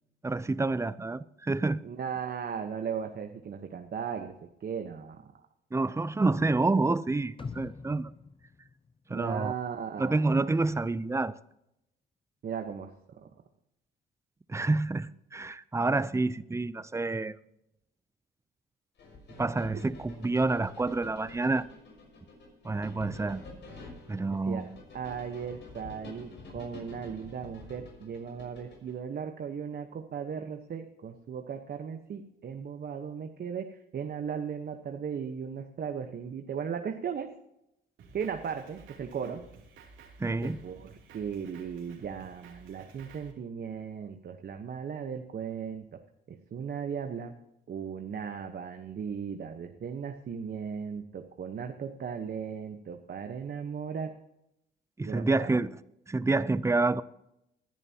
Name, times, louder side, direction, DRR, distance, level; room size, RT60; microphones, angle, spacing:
voice 1, 0.2-1.8 5.7-8.1 9.1-9.5 10.0-11.3 14.5-17.3 19.4-21.7 22.6-23.4 24.1-24.6 40.2-40.6 55.0-55.8 56.1-57.0, right 3 dB, 15° right, 0.6 m, -28 dB
voice 2, 1.8-4.3 4.6-5.2 9.1-10.4 12.4-12.9 13.2-13.3 24.5-24.6 24.9-37.3 38.1-39.4 40.4-45.8 46.3-47.3 47.7-54.1 55.0-55.6, right 7 dB, 50° right, 1.2 m, -37 dB
sound 1, 7.4-9.5 9.9-10.0, left 4 dB, 25° left, 0.7 m, -44 dB
sound 2, 19.0-29.0, left 3 dB, 65° left, 5.9 m, -48 dB
Drum kit, 38.0-43.3, right 4 dB, 85° right, 3.1 m, -54 dB
19.5 x 11.0 x 2.9 m
cardioid pair, 90°, 20 cm